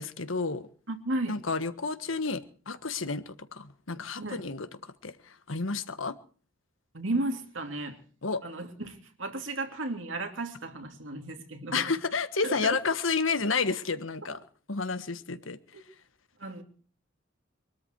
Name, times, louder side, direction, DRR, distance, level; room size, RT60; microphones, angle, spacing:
voice 1, 0.0-0.7 1.3-6.1 8.2-8.4 11.7-14.4 14.7-15.6, left 4 dB, 90° left, 1.5 m, -31 dB
voice 2, 0.9-1.4 4.2-4.4 6.9-8.0 8.4-11.9 12.4-12.8 15.7-15.8 16.4-16.6, right 2 dB, 80° right, 2.9 m, -34 dB
23.5 x 13.5 x 4.6 m
head